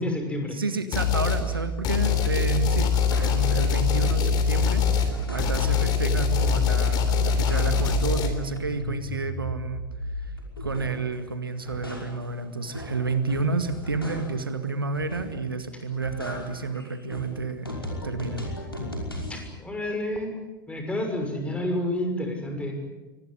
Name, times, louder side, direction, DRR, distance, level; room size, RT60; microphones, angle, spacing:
voice 1, 0.0-0.6 5.6-5.8 19.3-20.3 20.7-22.8, left 1 dB, 10° left, 4 dB, 6.4 m, -29 dB
voice 2, 0.5-9.8 10.2-10.3 10.6-17.7 18.0-18.4, right 3 dB, 80° right, 10 dB, 1.8 m, -30 dB
sound 1, 0.9-1.5 1.8-8.3, left 6 dB, 35° left, 3.5 m, -23 dB
sound 2, 2.0-2.3 2.7-3.7 4.0-5.8 6.2-6.8 7.1-8.1 8.4-11.1 11.5-14.5 14.9-15.5 15.8-19.5, equal, 90° left, 5.4 m, -37 dB
24.0 x 19.5 x 10.0 m, 1.2 s
figure-of-eight pair, 85°, 12 cm